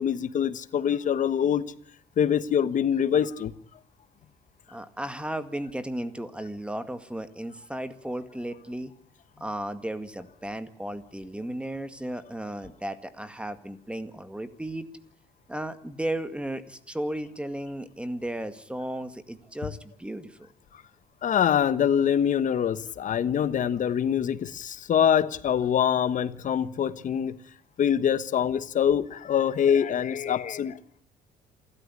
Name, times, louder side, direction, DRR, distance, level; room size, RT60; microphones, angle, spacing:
voice 1, 0.0-1.6 2.2-3.5 21.2-27.4 27.8-30.8, left 8 dB, 50° left, 1.3 m, -24 dB
voice 2, 4.7-8.9 9.4-14.9 15.5-20.5, right 1 dB, 5° right, 2.0 m, -35 dB
28.0 x 13.5 x 9.8 m
cardioid pair, 110°, 17 cm